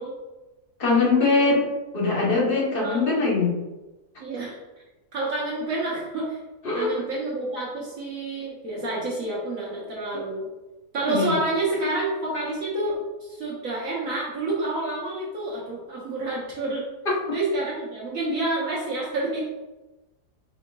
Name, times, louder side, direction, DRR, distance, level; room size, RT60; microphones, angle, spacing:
voice 1, 0.8-1.7 1.9-3.5 6.6-7.0 11.0-11.3 17.0-17.4, left 3 dB, 40° left, -3 dB, 1.0 m, -22 dB
voice 2, 4.2-4.6 5.1-6.4 6.7-10.5 10.9-13.0 13.2-16.8 17.3-19.5, right 2 dB, 60° right, -5 dB, 1.2 m, -28 dB
4.6 x 4.3 x 2.3 m, 1.1 s
omnidirectional pair, 1.7 m